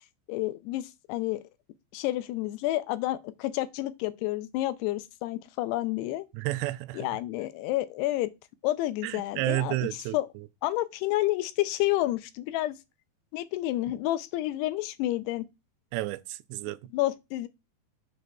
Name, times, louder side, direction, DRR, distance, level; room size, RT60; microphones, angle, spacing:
voice 1, 0.3-1.4 1.9-6.2 6.9-8.3 8.6-9.9 10.1-10.3 10.6-12.8 13.3-15.5 16.9-17.5, left 16 dB, 85° left, 2.6 m, -29 dB
voice 2, 6.3-7.1 9.0-10.2 15.9-16.8, right 18 dB, 90° right, 2.7 m, -31 dB
7.3 x 6.5 x 2.3 m
omnidirectional pair, 4.8 m